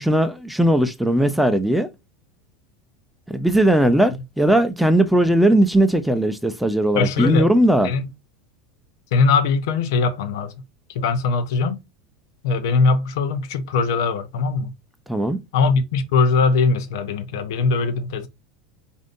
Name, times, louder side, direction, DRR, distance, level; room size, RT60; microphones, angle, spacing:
voice 1, 0.0-1.9 3.3-7.9 15.1-15.4, right 1 dB, ahead, 0.5 m, -18 dB
voice 2, 6.9-7.5 7.8-8.1 9.1-10.5 10.9-11.8 12.4-14.7 15.5-18.3, left 4 dB, 75° left, 0.7 m, -20 dB
5.0 x 2.7 x 2.5 m
supercardioid pair, 115°, 2 cm